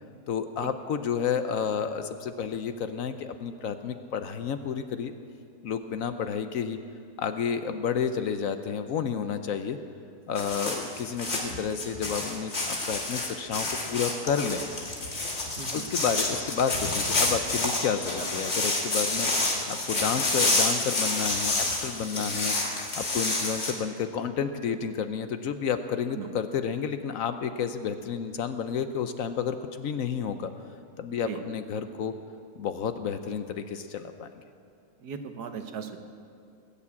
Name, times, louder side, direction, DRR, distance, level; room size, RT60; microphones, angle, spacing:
voice 1, 0.3-5.1 5.6-6.8 7.2-9.8 10.3-14.7 15.7-30.5 31.0-32.1 32.6-34.3, left 7 dB, 65° left, 9 dB, 1.0 m, -31 dB
sound 1, 10.4-23.7, left 2 dB, 40° left, 2.0 m, -29 dB
voice 2, 15.6-15.9 18.2-18.3 22.1-22.3 26.1-26.3 31.1-31.4 35.0-36.0, right 7 dB, 75° right, 7 dB, 1.5 m, -38 dB
20.0 x 7.0 x 8.4 m, 2.5 s
omnidirectional pair, 1.7 m